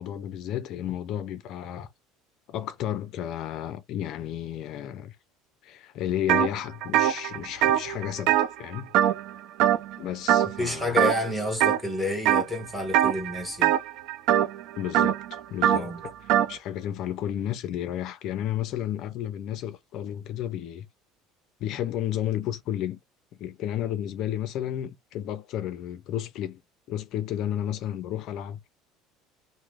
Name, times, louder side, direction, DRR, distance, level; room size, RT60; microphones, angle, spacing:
voice 1, 0.0-1.9 2.5-5.2 5.6-8.9 10.0-11.0 14.8-20.9 21.6-23.0 23.4-26.6 26.9-28.6, left 11 dB, 50° left, 0.4 m, -32 dB
sound 1, 6.3-6.5 6.8-9.3 9.6-10.0 10.3-10.6 11.0-11.8 12.3-12.6 12.9-16.5, right 11 dB, 65° right, 0.4 m, -22 dB
voice 2, 10.6-13.7 15.7-16.0, left 1 dB, ahead, 1.3 m, -29 dB
3.0 x 2.0 x 3.4 m
cardioid pair, 140°, 0 cm